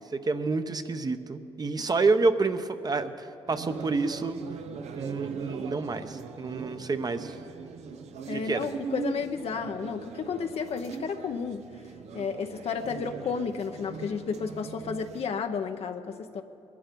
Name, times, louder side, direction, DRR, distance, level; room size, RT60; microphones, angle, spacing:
voice 1, 0.1-4.4 5.0-7.4 8.3-8.7, right 3 dB, 35° right, 9 dB, 0.9 m, -28 dB
sound 1, 3.5-15.2, right 6 dB, 85° right, 0.9 m, -40 dB
voice 2, 8.3-11.7 12.1-16.4, left 6 dB, 70° left, 6 dB, 0.8 m, -32 dB
21.5 x 12.0 x 5.3 m, 3.0 s
cardioid pair, 70°, 11 cm